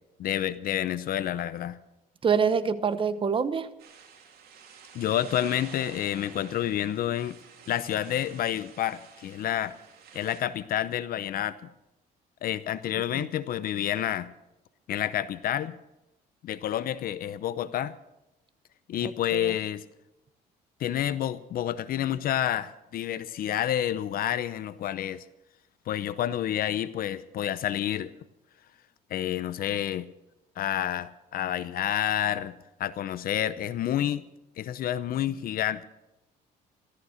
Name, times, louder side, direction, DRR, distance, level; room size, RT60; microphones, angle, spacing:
voice 1, 0.2-1.8 4.9-7.4 7.7-9.7 10.1-11.7 12.4-14.3 14.9-15.8 16.4-17.9 18.9-19.8 20.8-25.2 25.9-28.1 29.1-30.1 30.6-32.5 32.8-34.2 34.6-35.8, left 11 dB, 60° left, 15 dB, 0.7 m, -29 dB
voice 2, 2.2-3.7 13.1-13.3 19.0-19.5, right 6 dB, 30° right, 12 dB, 1.0 m, -26 dB
sound 1, 3.8-10.4, right 7 dB, 65° right, 3.1 m, -50 dB
14.5 x 13.5 x 6.4 m, 0.92 s
cardioid pair, 110°, 17 cm